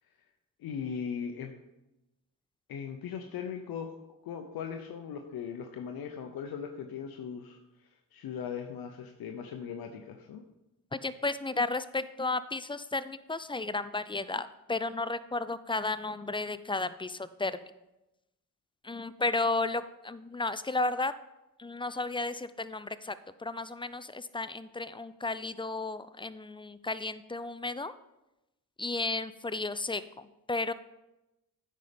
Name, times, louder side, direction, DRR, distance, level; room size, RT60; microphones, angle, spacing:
voice 1, 0.6-1.5 2.7-4.0 4.2-10.4, left 7 dB, 75° left, 5 dB, 0.8 m, -39 dB
voice 2, 10.9-17.6 18.8-21.1 21.6-27.9 28.8-30.7, left 3 dB, 15° left, 14 dB, 0.4 m, -33 dB
9.1 x 5.5 x 5.1 m, 0.95 s
cardioid pair, 70°, 36 cm